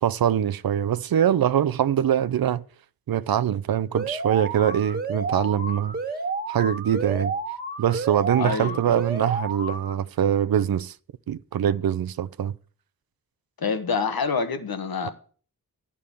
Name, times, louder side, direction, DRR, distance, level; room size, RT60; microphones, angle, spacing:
voice 1, 0.0-2.6 3.1-6.0 6.5-7.3 7.8-10.9 11.3-12.5, right 10 dB, 70° right, 0.5 m, -23 dB
Alarm, 3.9-9.9, right 3 dB, 25° right, 1.7 m, -31 dB
voice 2, 8.4-9.0 13.6-15.1, left 5 dB, 75° left, 1.3 m, -27 dB
10.5 x 4.9 x 7.0 m
cardioid pair, 60°, 37 cm